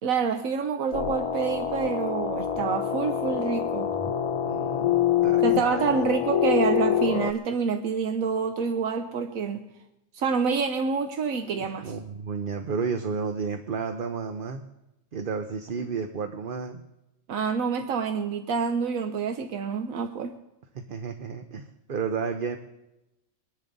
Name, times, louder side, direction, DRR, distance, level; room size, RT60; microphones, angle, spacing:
voice 1, 0.0-3.9 5.4-9.7 10.1-11.9 17.3-20.3, right 6 dB, 80° right, 6 dB, 1.2 m, -27 dB
sound 1, 0.9-7.3, left 9 dB, 40° left, 0.5 m, -26 dB
voice 2, 4.4-6.1 11.5-14.6 15.1-16.8 20.7-22.6, right 5 dB, 45° right, 6 dB, 0.9 m, -32 dB
23.0 x 10.5 x 4.0 m, 0.92 s
omnidirectional pair, 1.4 m